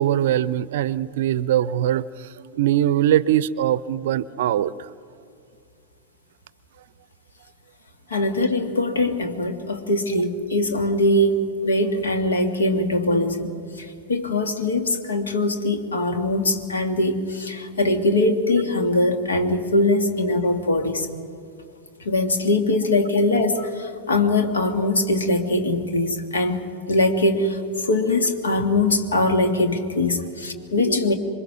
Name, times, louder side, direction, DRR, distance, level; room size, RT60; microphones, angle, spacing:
voice 1, 0.0-4.9 30.5-30.7, right 11 dB, 55° right, 20 dB, 0.6 m, -22 dB
voice 2, 8.1-13.5 13.8-21.1 22.0-31.1, left 2 dB, 70° left, 7 dB, 1.9 m, -22 dB
27.0 x 24.0 x 6.1 m, 2.4 s
figure-of-eight pair, 90°, 0 cm